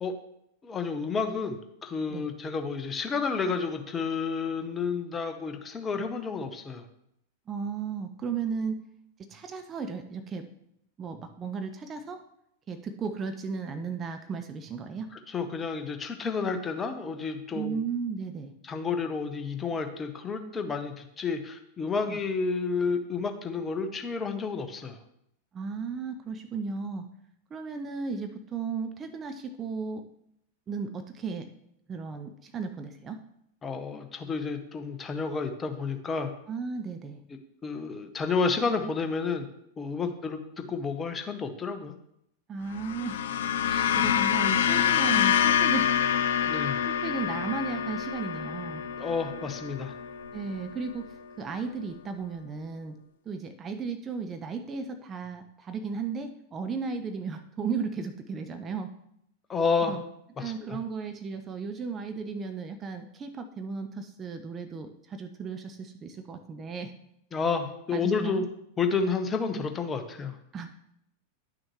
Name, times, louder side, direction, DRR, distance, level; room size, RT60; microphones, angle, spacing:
voice 1, 0.6-6.8 15.3-17.8 18.7-25.0 33.6-36.3 37.6-39.5 39.8-41.9 46.4-46.9 49.0-49.9 59.5-59.9 60.4-60.8 67.3-68.4 68.8-70.4, left 5 dB, 20° left, 7 dB, 0.9 m, -30 dB
voice 2, 7.5-8.8 9.3-10.5 11.0-12.2 12.7-15.1 17.5-18.5 22.1-22.2 25.5-27.1 27.5-30.0 30.7-31.5 31.9-33.2 36.5-37.2 40.0-40.1 42.5-43.2 43.7-45.9 46.9-48.8 50.3-51.1 51.4-53.0 53.3-58.9 59.9-60.0 60.4-66.9 67.9-68.4 70.5-70.8, right 5 dB, 25° right, 7 dB, 0.6 m, -35 dB
sound 1, 42.7-51.2, left 9 dB, 60° left, 0.4 m, -27 dB
10.5 x 6.2 x 3.1 m, 0.77 s
figure-of-eight pair, 90°, 0 cm